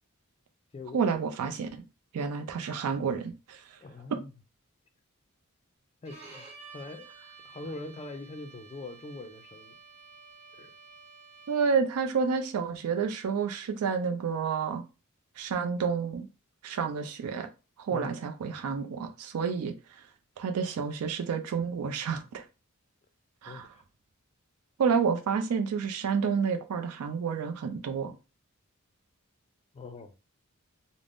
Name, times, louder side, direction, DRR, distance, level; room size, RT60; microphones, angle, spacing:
voice 1, 0.9-1.8 2.1-3.7 4.1-4.2 11.5-14.8 15.4-16.3 16.6-17.5 17.8-20.0 20.4-22.5 23.4-23.7 24.8-28.1, right 6 dB, 85° right, 0.4 m, -29 dB
voice 2, 3.8-4.3 6.0-6.5 6.7-7.1 7.4-9.8 10.5-10.7 17.9-18.2 23.5-23.8 29.7-30.1, left 2 dB, 30° left, 0.4 m, -42 dB
Bowed string instrument, 6.1-11.9, right 4 dB, 30° right, 1.6 m, -51 dB
3.4 x 2.0 x 2.4 m
head